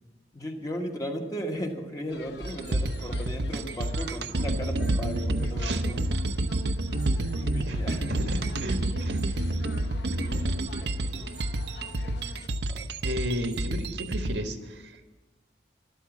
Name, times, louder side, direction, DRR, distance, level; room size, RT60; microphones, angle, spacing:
voice 1, 0.3-6.1 7.4-8.1 10.3-11.4 12.7-12.9, equal, 20° left, 2 dB, 1.4 m, -36 dB
sound 1, 2.1-12.5, left 3 dB, 70° left, 1.0 m, -47 dB
sound 2, 2.4-14.4, right 1 dB, 65° right, 0.7 m, -29 dB
voice 2, 7.6-9.2 13.0-15.0, equal, 85° right, 5 dB, 1.7 m, -34 dB
13.0 x 12.0 x 7.2 m, 1.2 s
head